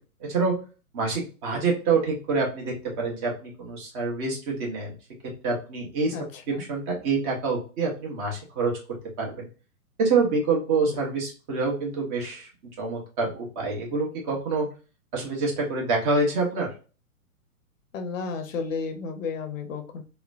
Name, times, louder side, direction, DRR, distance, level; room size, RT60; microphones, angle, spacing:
voice 1, 0.2-0.6 0.9-4.9 5.4-6.1 6.5-8.8 9.2-9.5 10.0-12.5 12.8-14.7 15.1-16.7, right 4 dB, 30° right, -2 dB, 1.0 m, -26 dB
voice 2, 6.1-6.6 10.9-11.0 17.9-20.0, left 5 dB, 60° left, 6 dB, 0.8 m, -33 dB
3.0 x 2.1 x 2.4 m, 0.35 s
figure-of-eight pair, 115°, 43 cm